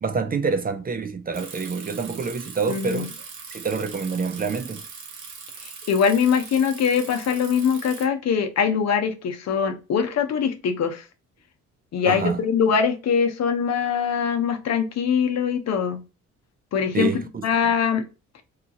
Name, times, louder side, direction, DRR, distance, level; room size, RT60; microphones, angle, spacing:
voice 1, 0.0-3.1 3.5-4.8 12.1-12.4 16.9-17.4, right 5 dB, 30° right, 0.4 m, -27 dB
Bicycle, 1.3-8.0, right 5 dB, 85° right, 0.9 m, -40 dB
voice 2, 2.7-3.1 5.6-11.0 11.9-16.0 16.7-17.1 17.4-18.0, left 7 dB, 60° left, 0.7 m, -22 dB
2.9 x 2.4 x 2.7 m
cardioid pair, 90°, 30 cm